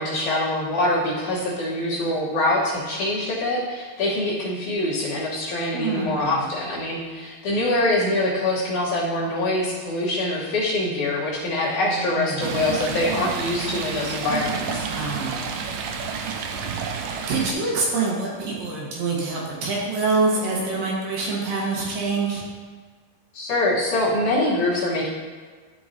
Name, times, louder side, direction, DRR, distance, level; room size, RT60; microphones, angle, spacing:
voice 1, 0.0-14.9 23.3-25.1, left 1 dB, 65° left, -7 dB, 2.2 m, -24 dB
voice 2, 5.7-6.4 11.9-12.5 14.8-15.4 17.3-22.4, right 3 dB, 70° right, -3 dB, 2.6 m, -26 dB
Stream, 12.4-17.5, right 5 dB, 90° right, 1.8 m, -30 dB
12.5 x 4.7 x 2.6 m, 1.5 s
omnidirectional pair, 4.4 m